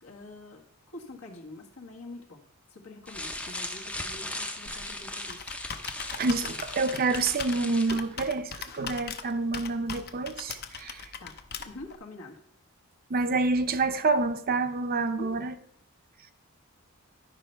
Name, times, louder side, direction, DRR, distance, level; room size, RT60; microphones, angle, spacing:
voice 1, 0.0-2.4 2.7-5.5 11.2-11.3 11.6-12.4 15.1-15.3, left 2 dB, 75° left, 1.6 m, -45 dB
sound 1, 3.1-8.1, left 1 dB, 5° left, 0.5 m, -38 dB
Computer keyboard, 4.6-12.0, left 6 dB, 45° left, 0.7 m, -40 dB
voice 2, 6.1-11.1 13.1-15.6, right 3 dB, 45° right, 0.6 m, -28 dB
11.5 x 5.5 x 4.5 m
head